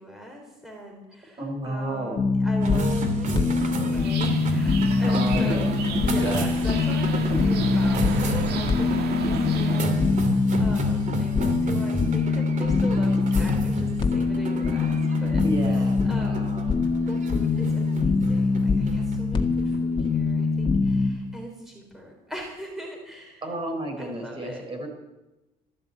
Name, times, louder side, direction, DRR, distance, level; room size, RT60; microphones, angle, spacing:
voice 1, 0.0-16.6 17.0-23.5 24.0-24.7, equal, ahead, 0 dB, 3.8 m, -41 dB
voice 2, 1.4-2.2 5.1-5.6 6.1-6.4 15.4-16.7 23.4-24.9, right 1 dB, 30° right, 2 dB, 5.0 m, -31 dB
sound 1, 2.2-21.1, left 4 dB, 30° left, 1.8 m, -24 dB
sound 2, 2.6-21.3, right 2 dB, 50° right, 2.6 m, -32 dB
sound 3, 3.9-9.9, right 6 dB, 75° right, 1.9 m, -34 dB
14.0 x 12.0 x 8.4 m, 1.0 s
cardioid pair, 110°, 17 cm